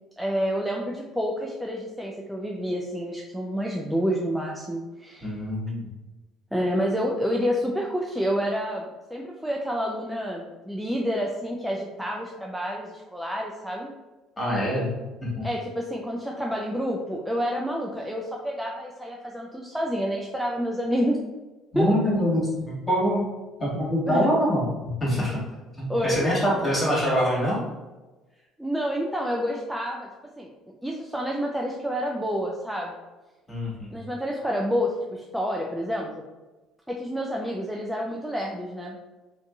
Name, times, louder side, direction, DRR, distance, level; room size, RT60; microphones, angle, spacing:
voice 1, 0.2-5.4 6.5-13.9 15.4-21.2 21.7-22.1 24.1-24.3 25.9-26.3 28.6-30.1 30.4-30.5 30.8-33.0 33.9-36.1 36.9-39.0, equal, 5° right, -1 dB, 0.4 m, -28 dB
voice 2, 5.2-5.9 14.4-15.5 21.7-23.2 23.6-25.4 25.7-27.6 33.5-33.9, equal, 20° left, -6 dB, 1.4 m, -25 dB
2.5 x 2.5 x 2.3 m, 1.2 s
hypercardioid pair, 70°, 0 cm